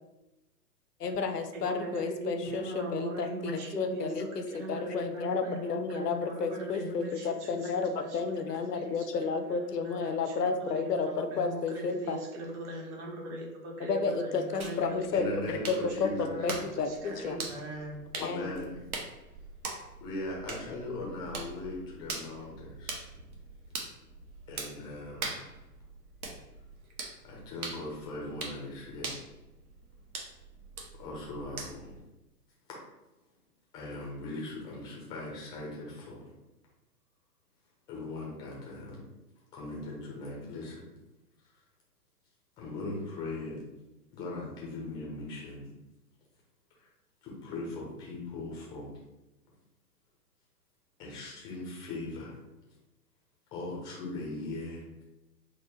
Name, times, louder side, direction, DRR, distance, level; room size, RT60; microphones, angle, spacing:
voice 1, 1.0-12.2 13.8-16.1 16.4-17.4 18.2-18.5, left 5 dB, 75° left, 7 dB, 0.6 m, -32 dB
voice 2, 1.5-7.7 8.0-8.2 8.5-9.0 9.5-15.5 15.8-18.0, right 1 dB, 45° right, -2 dB, 1.2 m, -39 dB
sound 1, 14.6-32.0, right 3 dB, 65° right, 1.0 m, -43 dB
voice 3, 15.1-16.6 18.2-18.8 20.0-23.1 24.5-25.4 27.2-29.2 31.0-32.0 33.7-36.3 37.9-39.0 39.5-40.8 42.6-43.6 44.1-45.7 46.7-46.9 47.2-48.9 51.0-52.4 52.7-52.8 53.5-55.0, left 2 dB, 10° left, -3 dB, 0.5 m, -39 dB
3.8 x 2.1 x 4.2 m, 0.99 s
figure-of-eight pair, 115°, 48 cm